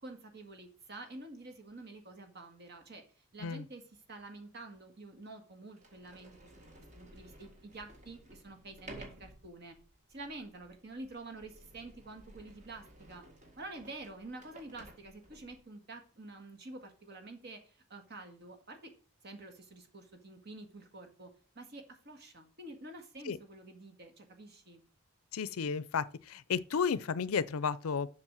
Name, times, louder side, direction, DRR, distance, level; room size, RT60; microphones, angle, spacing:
voice 1, 0.0-3.0 3.3-3.8 4.1-6.3 6.9-9.8 10.1-13.2 13.6-18.9 19.2-21.3 21.5-24.8, right 2 dB, 50° right, 1.8 m, -48 dB
Sliding door, 5.2-5.3 5.7-15.6, right 1 dB, 35° right, 1.8 m, -55 dB
voice 2, 25.3-28.1, left 6 dB, 80° left, 0.5 m, -33 dB
7.3 x 6.0 x 6.2 m
head